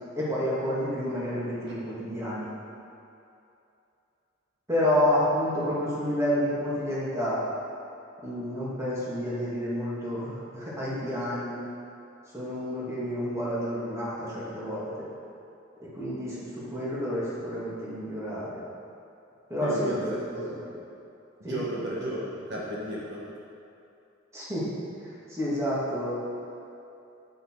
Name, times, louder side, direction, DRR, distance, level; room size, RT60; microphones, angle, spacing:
voice 1, 0.2-2.5 4.7-7.5 8.2-11.6 12.3-15.1 15.8-18.6 19.5-20.6 21.4-21.6 24.3-24.7 25.0-26.2, equal, 15° right, -8 dB, 2.7 m, -29 dB
voice 2, 19.6-19.9 20.3-20.5 21.5-23.2, right 1 dB, 55° right, -5 dB, 1.7 m, -33 dB
9.8 x 9.0 x 5.0 m, 2.7 s
head